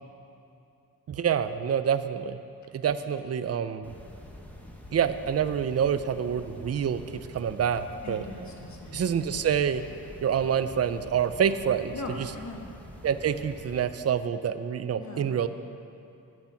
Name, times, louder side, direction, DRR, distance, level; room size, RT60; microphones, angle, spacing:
voice 1, 1.1-2.4 2.7-4.0 4.9-8.2 8.9-9.8 10.2-11.9 13.0-15.5, right 8 dB, 40° right, 12 dB, 0.5 m, -27 dB
sound 1, 3.8-13.8, left 1 dB, 5° left, 1.2 m, -46 dB
voice 2, 8.0-9.0 11.9-12.6 14.9-15.3, left 2 dB, 50° left, 1 dB, 1.6 m, -40 dB
12.0 x 8.7 x 5.8 m, 2.6 s
wide cardioid pair, 125°, 37 cm